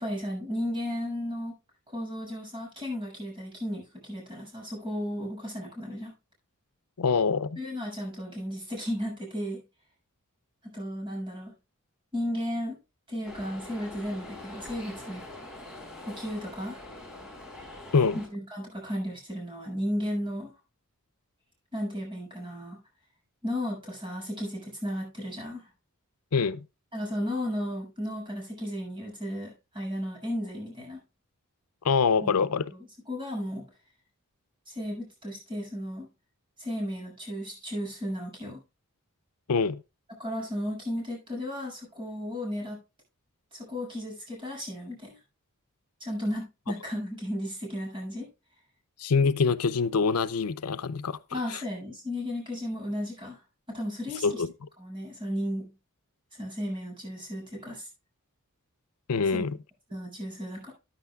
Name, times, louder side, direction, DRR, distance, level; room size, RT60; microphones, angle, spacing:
voice 1, 0.0-1.5 1.9-6.1 7.5-9.6 10.6-11.5 12.1-12.8 13.1-15.2 16.0-16.8 18.1-20.5 21.7-22.8 23.4-25.7 26.9-31.0 32.2-32.4 32.7-33.6 34.7-36.1 36.6-38.6 40.2-42.8 43.5-45.2 46.0-48.3 51.3-53.4 53.7-54.4 54.8-55.7 56.4-57.9 59.3-59.6 59.9-60.7, equal, 20° right, 6.8 m, -34 dB
voice 2, 7.0-7.6 17.9-18.2 26.3-26.6 31.8-32.7 39.5-39.8 49.0-51.2 54.2-54.5 59.1-59.5, left 5 dB, 90° left, 0.6 m, -24 dB
sound 1, 13.2-18.3, left 1 dB, 5° right, 4.5 m, -44 dB
14.0 x 10.0 x 2.4 m
head